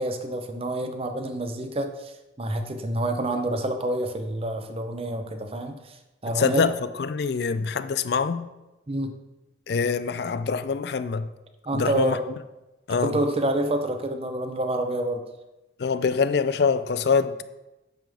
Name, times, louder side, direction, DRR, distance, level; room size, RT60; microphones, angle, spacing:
voice 1, 0.0-6.0 6.2-6.7 8.9-9.1 11.7-12.2 13.0-15.2, right 1 dB, 30° right, 0.7 m, -28 dB
voice 2, 6.3-6.7 7.0-8.5 9.7-11.3 11.7-12.2 12.9-13.1 15.8-17.4, left 5 dB, 60° left, 0.4 m, -24 dB
9.1 x 6.9 x 3.6 m
head